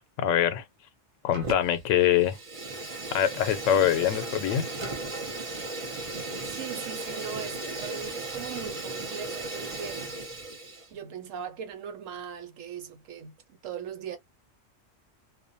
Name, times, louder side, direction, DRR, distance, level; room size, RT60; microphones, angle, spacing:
voice 1, 0.2-0.6 1.2-2.4 3.1-4.7, left 10 dB, 80° left, 0.9 m, -24 dB
Fire, 1.3-1.8 2.1-10.9, right 2 dB, 35° right, 0.6 m, -36 dB
voice 2, 6.4-10.2 10.9-13.3 13.6-14.2, right 8 dB, 85° right, 1.1 m, -39 dB
2.5 x 2.2 x 2.5 m
omnidirectional pair, 1.3 m